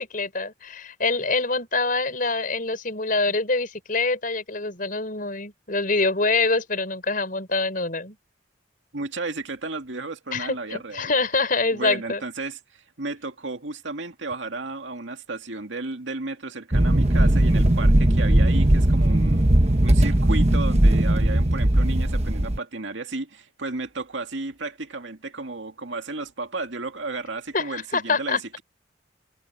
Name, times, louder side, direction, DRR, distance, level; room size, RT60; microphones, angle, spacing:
voice 1, 0.0-8.2 10.3-12.2 27.5-28.4, left 3 dB, 45° left, 5.1 m, -25 dB
voice 2, 8.9-11.1 11.7-19.5 19.8-28.6, right 3 dB, 85° right, 2.2 m, -33 dB
sound 1, 16.7-22.6, right 1 dB, 35° right, 1.2 m, -18 dB
head